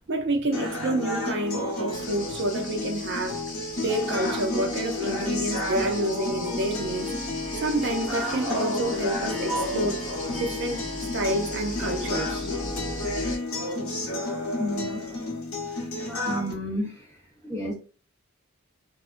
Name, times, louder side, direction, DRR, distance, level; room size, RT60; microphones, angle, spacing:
voice 1, 0.1-3.4 3.8-7.1 7.6-10.0 10.4-10.8 11.1-12.5, right 1 dB, 55° right, 0.5 m, -28 dB
sound 1, 0.5-16.5, left 2 dB, 65° left, 0.9 m, -31 dB
sound 2, 1.9-13.4, left 2 dB, 35° left, 0.8 m, -39 dB
Harp, 6.4-14.9, left 1 dB, ahead, 0.6 m, -41 dB
voice 2, 14.6-15.0 16.2-17.0 17.4-17.7, equal, 15° left, 1.1 m, -30 dB
2.4 x 2.1 x 2.4 m
head